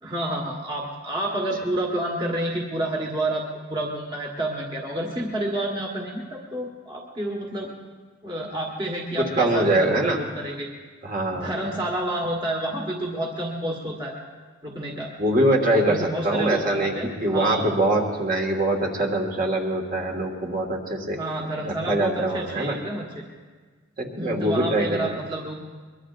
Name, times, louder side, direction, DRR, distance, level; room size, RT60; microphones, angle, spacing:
voice 1, 0.0-7.7 8.2-10.7 11.3-14.1 14.6-15.1 15.7-17.7 21.1-23.2 24.2-25.5, right 1 dB, 20° right, -1 dB, 1.4 m, -29 dB
voice 2, 9.3-10.2 11.0-11.6 15.2-16.9 17.2-21.2 21.6-22.8 24.0-25.1, right 1 dB, 40° right, 1 dB, 1.7 m, -23 dB
23.0 x 22.0 x 2.5 m, 1.5 s
head